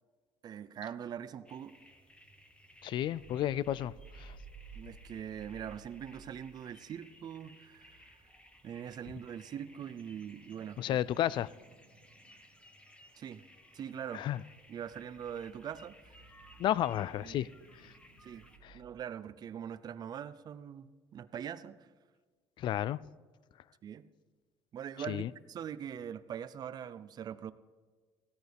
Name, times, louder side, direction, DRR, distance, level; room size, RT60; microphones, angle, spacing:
voice 1, 0.4-1.8 4.7-8.1 8.6-11.0 13.2-13.4 13.7-14.3 14.7-16.2 17.2-17.4 18.2-18.5 18.7-21.9 23.8-24.1 24.7-27.5, right 8 dB, 45° right, 0.6 m, -42 dB
Eerie Atmosphere, 1.2-19.0, right 4 dB, 80° right, 1.3 m, -58 dB
sound 1, 1.4-18.6, left 1 dB, 10° left, 1.3 m, -60 dB
voice 2, 2.8-4.4 10.8-11.5 14.1-14.4 16.6-17.5 17.8-17.9 18.6-18.7 22.6-23.0 25.1-25.3, left 12 dB, 55° left, 0.4 m, -32 dB
17.0 x 13.5 x 3.5 m
cardioid pair, 120°, 10 cm